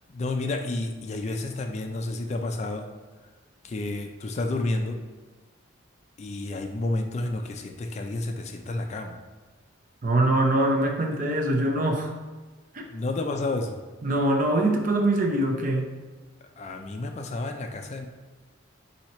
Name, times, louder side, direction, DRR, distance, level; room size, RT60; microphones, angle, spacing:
voice 1, 0.1-2.9 3.6-5.0 6.2-9.2 12.9-13.8 16.6-18.1, left 2 dB, 35° left, 4 dB, 0.3 m, -30 dB
voice 2, 10.0-12.1 12.7-12.8 14.0-15.9, right 1 dB, 45° right, 2 dB, 0.6 m, -23 dB
4.4 x 2.8 x 4.2 m, 1.3 s
head